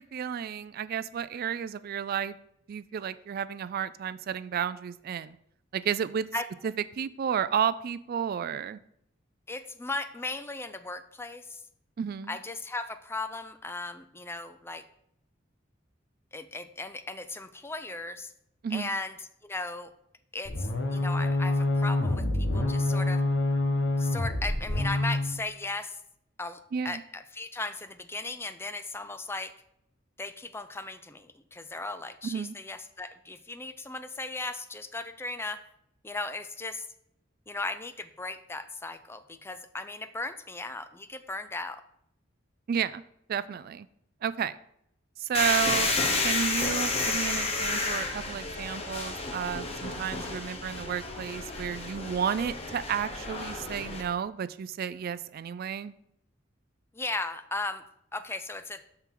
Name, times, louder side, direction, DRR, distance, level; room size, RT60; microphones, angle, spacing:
voice 1, 0.0-2.4 2.7-5.4 5.7-6.3 6.6-8.8 12.0-12.4 18.6-18.9 26.7-27.0 32.2-32.6 42.7-43.0 43.3-43.9 44.2-44.6 45.2-46.0 46.2-55.9, right 8 dB, 50° right, 16 dB, 0.3 m, -32 dB
voice 2, 9.5-11.6 12.3-14.8 16.3-18.3 18.7-19.1 19.4-19.9 20.3-23.2 24.0-25.9 26.4-26.6 26.8-29.5 30.2-35.6 36.0-36.8 37.5-41.8 56.9-57.8 58.1-58.8, left 2 dB, 15° left, 10 dB, 0.5 m, -37 dB
sound 1, 20.4-25.3, left 2 dB, 70° left, 1.2 m, -27 dB
sound 2, 45.3-54.0, left 3 dB, 30° left, 1.2 m, -31 dB
12.5 x 4.4 x 3.8 m, 0.74 s
head